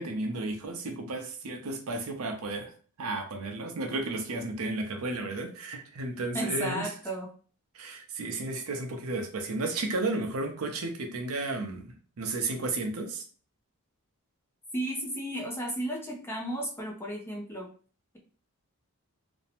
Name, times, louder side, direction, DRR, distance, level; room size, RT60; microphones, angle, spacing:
voice 1, 0.0-2.7 3.0-6.9 7.7-13.2, right 2 dB, 75° right, 4 dB, 0.5 m, -33 dB
voice 2, 6.3-7.3 14.7-17.7, right 1 dB, 10° left, -1 dB, 0.4 m, -33 dB
2.6 x 2.1 x 2.8 m, 0.41 s
head